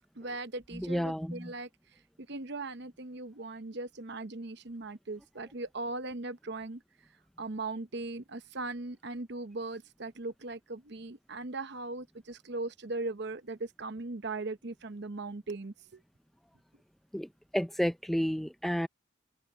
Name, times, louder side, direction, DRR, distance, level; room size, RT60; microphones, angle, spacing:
voice 1, 0.2-1.7 2.3-6.8 7.4-16.0, right 2 dB, 55° right, 0.9 m, -39 dB
voice 2, 0.7-1.5 17.1-18.9, equal, ahead, 0.4 m, -31 dB
head